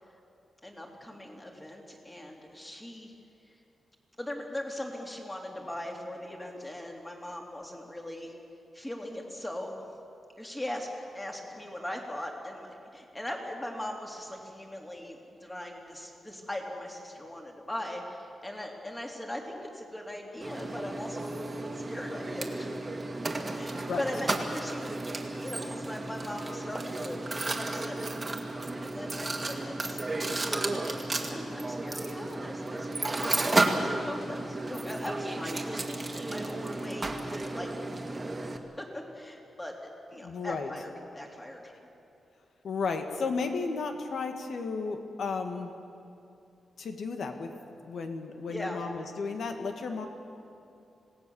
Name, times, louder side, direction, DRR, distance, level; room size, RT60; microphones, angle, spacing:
voice 1, 0.6-3.1 3.5-3.6 4.2-8.3 8.7-9.7 10.4-10.9 11.1-22.7 23.5-28.3 28.8-35.9 36.1-39.7 40.1-41.7 48.5-48.8, left 1 dB, 15° left, 0 dB, 3.2 m, -40 dB
Mechanisms, 20.4-38.6, right 2 dB, 20° right, 1.9 m, -33 dB
voice 2, 40.2-40.7 42.6-45.7 46.8-47.5 47.8-50.1, left 4 dB, 65° left, 5 dB, 2.0 m, -33 dB
26.5 x 18.0 x 7.2 m, 2.7 s
wide cardioid pair, 135°, 0 cm